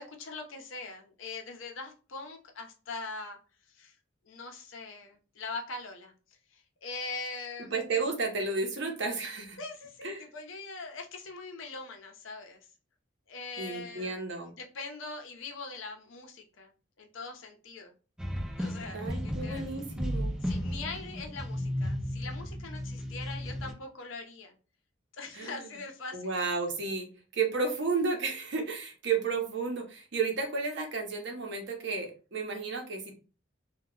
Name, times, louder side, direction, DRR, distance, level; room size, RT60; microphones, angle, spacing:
voice 1, 0.0-3.4 3.7-4.0 4.2-6.1 6.5-7.7 9.6-12.7 13.3-14.2 14.6-16.7 17.0-17.9 18.6-19.7 20.4-24.6 25.1-26.3, left 3 dB, 75° left, 3 dB, 0.6 m, -42 dB
voice 2, 7.7-9.6 10.0-10.2 13.6-14.5 18.9-20.3 25.3-25.7 26.1-27.1 27.3-33.2, right 4 dB, 60° right, 3 dB, 0.7 m, -32 dB
sound 1, 18.2-23.7, equal, 5° right, 0.5 m, -34 dB
2.2 x 2.0 x 3.6 m, 0.35 s
head